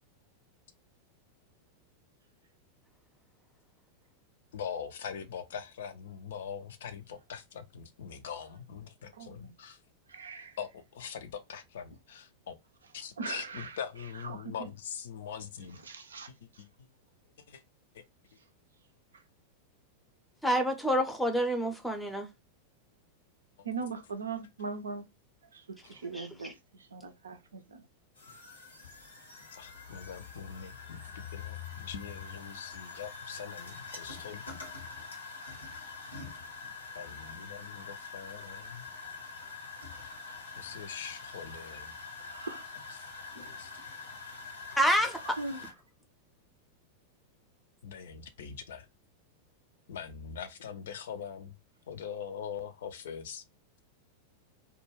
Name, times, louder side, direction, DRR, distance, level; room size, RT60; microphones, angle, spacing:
voice 1, 4.5-9.8 10.6-12.6 12.9-15.8 16.6-16.7 17.5-17.6 25.8-25.9 29.5-31.0 31.3-34.4 37.0-38.9 40.6-41.9 43.6-43.7 47.8-48.9 49.9-51.5 51.9-53.4, left 7 dB, 60° left, 0.3 m, -42 dB
voice 2, 9.1-9.5 10.1-10.6 13.2-13.8 14.1-14.7 15.7-16.3 16.5-16.6 23.6-25.0 25.5-25.6 25.9-27.8 42.3-42.6 45.2-45.6, right 4 dB, 70° right, 0.4 m, -40 dB
voice 3, 20.4-22.3 26.1-26.3 44.8-45.4, equal, 5° left, 0.5 m, -27 dB
sound 1, 28.2-45.7, left 4 dB, 75° left, 0.7 m, -45 dB
2.2 x 2.2 x 3.0 m
figure-of-eight pair, 90°, 0 cm